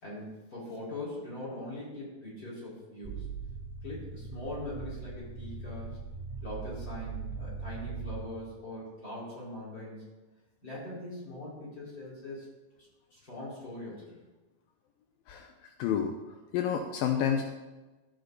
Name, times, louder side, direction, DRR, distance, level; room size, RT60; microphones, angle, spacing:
voice 1, 0.0-3.2 3.8-5.9 6.4-10.0 10.6-12.5 13.1-14.2, left 1 dB, 25° left, -7 dB, 4.8 m, -41 dB
sound 1, 3.0-8.2, right 5 dB, 10° right, 1.5 m, -40 dB
voice 2, 15.8-16.1 16.5-17.4, left 8 dB, 80° left, 4 dB, 2.5 m, -28 dB
14.5 x 8.1 x 4.1 m, 1.1 s
omnidirectional pair, 4.1 m